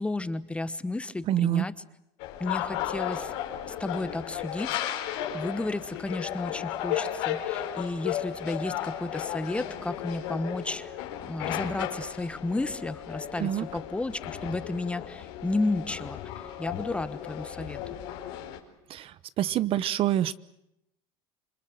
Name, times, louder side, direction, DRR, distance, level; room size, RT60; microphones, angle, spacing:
voice 1, 0.0-1.7 2.4-3.3 3.7-4.8 5.1-17.8, left 2 dB, 10° left, 14 dB, 1.2 m, -33 dB
voice 2, 1.3-1.6 13.4-13.6 18.9-19.1 19.4-20.4, right 12 dB, 50° right, 17 dB, 0.9 m, -26 dB
sound 1, 2.2-18.6, left 11 dB, 80° left, 4.5 m, -35 dB
27.5 x 22.5 x 7.9 m, 0.82 s
supercardioid pair, 125°, 13 cm